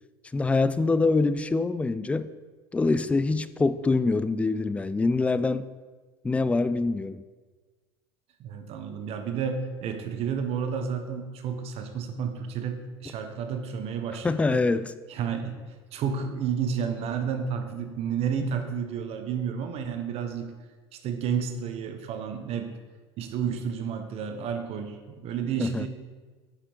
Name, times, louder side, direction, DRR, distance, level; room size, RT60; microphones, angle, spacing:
voice 1, 0.3-2.3 2.7-5.6 6.2-7.2 14.2-14.9 25.6-25.9, left 3 dB, 10° left, 15 dB, 0.3 m, -24 dB
voice 2, 8.4-14.6 15.1-15.6 15.9-20.5 20.9-22.7 23.2-25.9, right 7 dB, 50° right, 6 dB, 1.0 m, -31 dB
7.2 x 5.1 x 4.5 m, 1.4 s
hypercardioid pair, 80°, 13 cm